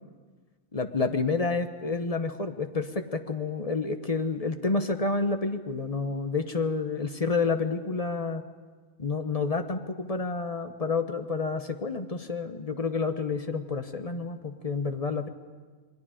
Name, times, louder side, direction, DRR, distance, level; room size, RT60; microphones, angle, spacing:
voice 1, 0.7-8.4 9.0-15.3, left 4 dB, 30° left, 8 dB, 1.0 m, -29 dB
28.0 x 21.5 x 5.0 m, 1.4 s
omnidirectional pair, 1.3 m